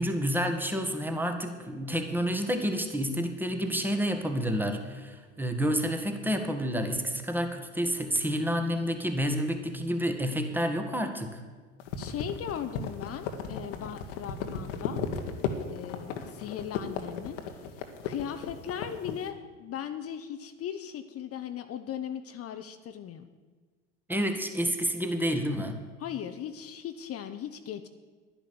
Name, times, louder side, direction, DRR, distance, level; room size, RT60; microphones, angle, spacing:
voice 1, 0.0-11.4 24.1-25.8, equal, 5° right, 5 dB, 1.6 m, -29 dB
sound 1, 11.8-19.2, left 7 dB, 70° left, 1.5 m, -35 dB
voice 2, 12.0-15.0 15.6-17.4 18.0-23.3 26.0-27.9, left 9 dB, 40° left, 9 dB, 0.9 m, -38 dB
11.0 x 10.5 x 6.9 m, 1.4 s
hypercardioid pair, 85°, 38 cm